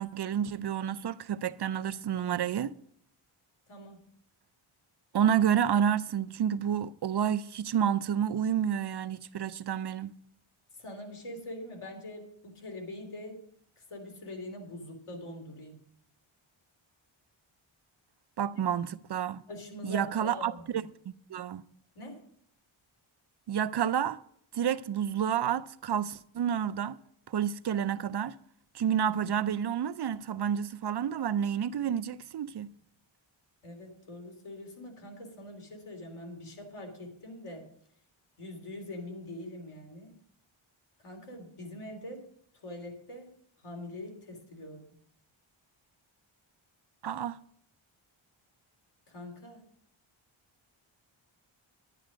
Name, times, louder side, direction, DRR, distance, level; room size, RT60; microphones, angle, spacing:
voice 1, 0.0-2.7 5.1-10.1 18.4-19.4 19.8-21.6 23.5-24.2 24.5-27.0 27.3-28.4 28.7-32.7 47.0-47.4, right 9 dB, 55° right, 0.5 m, -29 dB
voice 2, 3.7-4.0 10.8-13.4 13.8-15.8 19.5-20.8 21.9-22.2 33.6-37.6 38.4-40.1 41.0-42.2 42.5-43.3 43.6-44.9 49.1-49.6, left 1 dB, 85° left, 3.3 m, -43 dB
10.5 x 10.5 x 5.1 m
wide cardioid pair, 135°, 50 cm